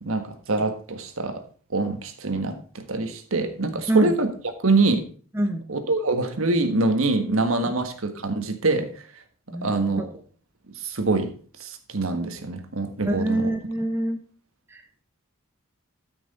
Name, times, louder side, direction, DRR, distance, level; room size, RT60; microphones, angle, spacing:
voice 1, 0.0-1.4 1.7-4.3 4.6-5.0 5.7-8.9 9.6-10.1 10.8-11.3 11.6-13.5, right 3 dB, 75° right, 7 dB, 1.5 m, -24 dB
voice 2, 9.5-10.0 13.0-14.2 14.7-15.0, right 1 dB, 10° right, 5 dB, 0.9 m, -26 dB
13.0 x 6.1 x 4.2 m, 0.42 s
head